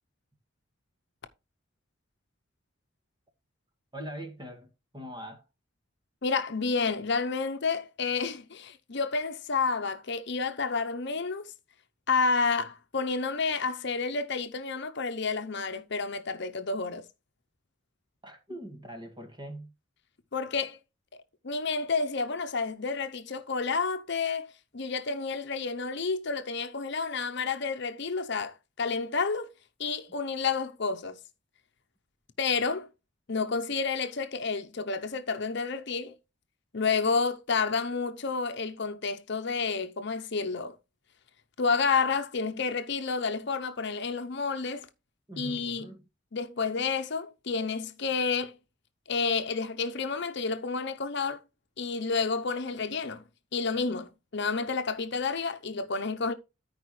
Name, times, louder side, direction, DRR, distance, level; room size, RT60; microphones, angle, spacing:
voice 1, 3.9-5.4 18.2-19.7 45.3-46.0, right 1 dB, 20° right, 2.0 m, -42 dB
voice 2, 6.2-11.5 12.1-17.0 20.3-20.8 21.4-29.5 29.8-31.2 32.4-32.9 33.3-36.1 36.7-40.8 41.6-44.9 45.4-45.9 46.3-48.6 49.1-51.4 51.8-53.2 53.5-56.3, left 4 dB, 60° left, 0.8 m, -30 dB
13.5 x 4.8 x 3.2 m
head